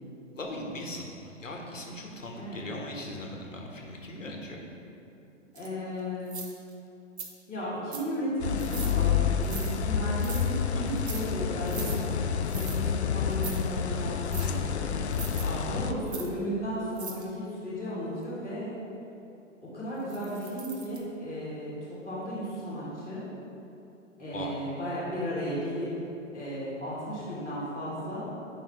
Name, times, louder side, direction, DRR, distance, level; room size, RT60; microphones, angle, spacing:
voice 1, 0.3-4.6 10.7-10.9 15.4-15.8 24.3-24.5, left 1 dB, 75° left, 0 dB, 1.3 m, -39 dB
voice 2, 2.3-2.7 5.5-6.4 7.5-12.1 12.3-15.0 15.7-18.8 19.6-23.2 24.2-25.9 26.3-28.3, equal, 5° right, -23 dB, 0.4 m, -35 dB
sound 1, 5.6-5.7 6.3-6.7 7.2-7.3 7.9-8.1 8.6-9.0 9.4-9.7 10.2-10.5 10.9-11.2 11.7-12.0 12.5-12.8 13.3-13.6 14.3-14.5 15.1-15.4 16.1-16.3 16.9-17.2 20.1-21.0, right 5 dB, 55° right, 0.9 m, -41 dB
sound 2, 8.4-15.9, left 7 dB, 60° left, 0.5 m, -29 dB
9.0 x 5.5 x 3.2 m, 2.8 s
figure-of-eight pair, 120°, 39 cm